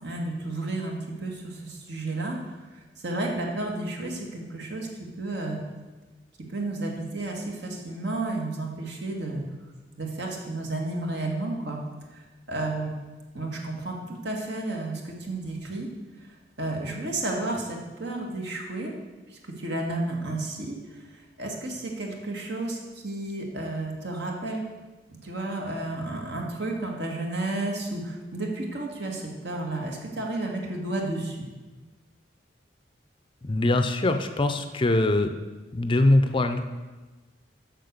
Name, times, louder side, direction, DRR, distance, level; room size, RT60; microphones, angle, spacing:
voice 1, 0.0-2.4 3.0-4.9 5.2-5.6 6.5-9.4 10.0-11.8 12.1-12.2 12.5-12.9 13.3-15.9 16.6-18.9 19.3-21.0 21.4-24.6 25.1-31.5, right 2 dB, 65° right, 0 dB, 1.8 m, -32 dB
voice 2, 33.4-35.3 35.7-36.6, left 2 dB, 25° left, 8 dB, 0.5 m, -22 dB
7.9 x 6.4 x 6.7 m, 1.2 s
head